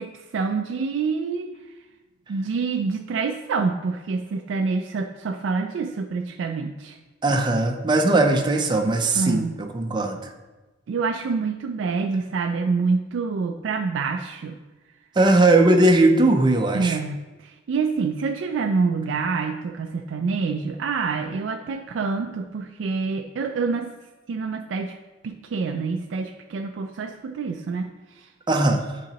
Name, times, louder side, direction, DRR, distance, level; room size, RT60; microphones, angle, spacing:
voice 1, 0.0-1.5 2.3-7.0 9.1-9.6 10.9-14.6 16.7-23.9 24.3-24.9 25.2-28.3, right 4 dB, 75° right, 4 dB, 0.3 m, -27 dB
voice 2, 7.2-10.3 15.1-17.0 28.5-29.0, right 2 dB, 25° right, 3 dB, 0.5 m, -19 dB
10.0 x 3.8 x 2.9 m, 1.2 s
head